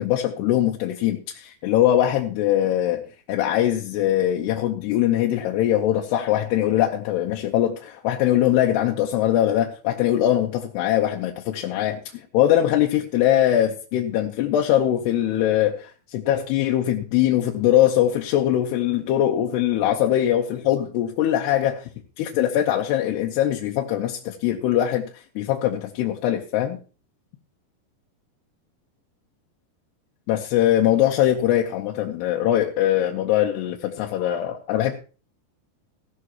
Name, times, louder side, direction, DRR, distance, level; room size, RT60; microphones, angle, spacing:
voice 1, 0.0-3.0 3.3-21.9 22.2-26.8 30.3-34.9, left 12 dB, 80° left, 1 dB, 2.9 m, -22 dB
15.5 x 12.5 x 2.9 m, 0.36 s
omnidirectional pair, 4.9 m